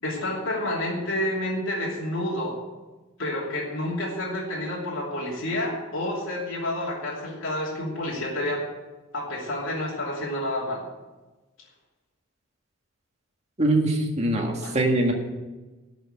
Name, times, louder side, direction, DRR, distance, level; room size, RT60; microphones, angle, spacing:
voice 1, 0.0-2.6 3.2-8.7 9.1-10.8 14.6-14.8, left 1 dB, 70° left, -5 dB, 2.9 m, -29 dB
voice 2, 13.6-15.1, right 1 dB, 35° right, 1 dB, 1.9 m, -23 dB
12.5 x 6.2 x 8.9 m, 1.2 s
head